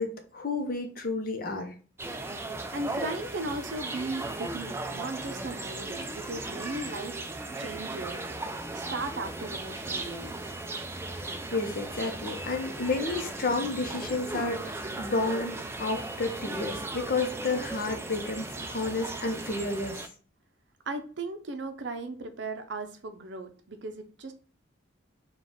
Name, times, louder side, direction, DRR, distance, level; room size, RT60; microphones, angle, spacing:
voice 1, 0.0-1.7 11.1-20.1, left 3 dB, 45° left, 4 dB, 0.7 m, -31 dB
sound 1, 2.0-20.1, right 2 dB, 15° right, 0.3 m, -37 dB
voice 2, 2.5-7.2 7.6-8.3 8.7-10.4 20.9-24.3, right 2 dB, 65° right, 6 dB, 0.6 m, -37 dB
4.0 x 2.3 x 3.5 m, 0.39 s
head